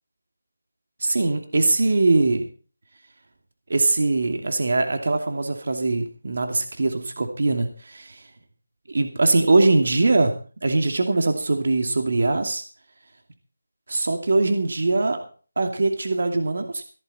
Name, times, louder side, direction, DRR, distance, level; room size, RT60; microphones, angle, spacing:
voice 1, 1.0-2.4 3.7-8.2 8.9-10.3 10.6-12.6 13.9-15.2 15.6-16.8, right 3 dB, 60° right, 6 dB, 2.6 m, -22 dB
16.0 x 13.0 x 4.3 m, 0.39 s
figure-of-eight pair, 170°, 0 cm